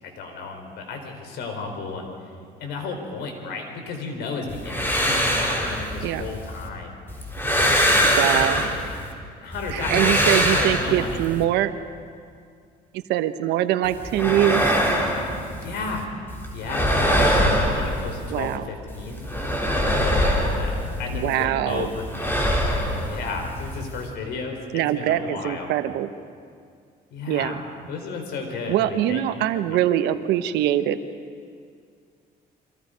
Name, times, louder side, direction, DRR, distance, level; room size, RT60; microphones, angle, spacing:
voice 1, 0.0-2.1 2.6-7.0 7.5-7.9 8.3-8.8 9.4-11.2 15.6-16.1 16.5-19.2 19.8-22.5 23.0-25.7 27.1-27.6 27.9-29.2 29.7-29.8, left 4 dB, 80° left, 3 dB, 4.6 m, -33 dB
sound 1, 4.5-6.7 7.1-9.1 9.5-11.4 13.8-16.0 16.3-18.6 18.9-21.4 21.7-24.1, equal, 15° left, 3.8 m, -23 dB
voice 2, 8.0-8.6 9.7-11.7 12.9-14.7 18.3-18.7 21.1-21.9 24.7-26.1 27.3-27.5 28.7-31.0, right 12 dB, 85° right, 11 dB, 1.1 m, -23 dB
28.5 x 25.0 x 5.2 m, 2.2 s
cardioid pair, 110°, 17 cm